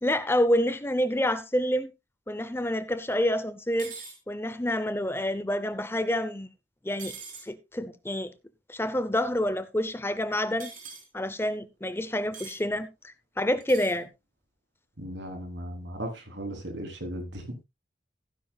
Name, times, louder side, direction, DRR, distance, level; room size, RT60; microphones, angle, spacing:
voice 1, 0.0-1.9 2.3-3.9 4.3-6.5 6.8-7.1 7.4-8.3 8.7-10.7 11.1-14.1, left 1 dB, 15° left, 0.7 m, -28 dB
sound 1, 3.8-4.2 7.0-7.5 10.6-11.0 12.3-12.6 13.6-14.0, right 5 dB, 45° right, 3.9 m, -42 dB
voice 2, 15.0-17.4, right 1 dB, 75° right, 3.6 m, -36 dB
15.5 x 10.0 x 2.3 m
head